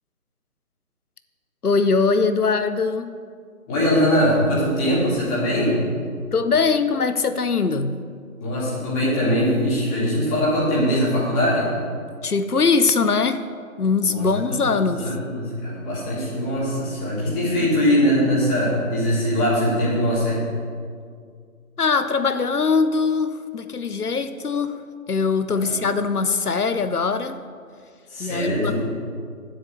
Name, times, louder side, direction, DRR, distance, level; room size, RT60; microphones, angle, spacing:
voice 1, 1.6-3.1 6.3-8.0 12.2-13.4 13.8-15.1 21.8-24.8 25.1-27.4 28.2-28.7, left 4 dB, 90° left, 10 dB, 0.8 m, -21 dB
voice 2, 3.7-5.8 8.4-11.7 14.0-20.4 25.5-25.8 28.1-28.7, equal, 10° left, -8 dB, 2.3 m, -22 dB
10.0 x 7.5 x 7.2 m, 2.1 s
figure-of-eight pair, 150°, 44 cm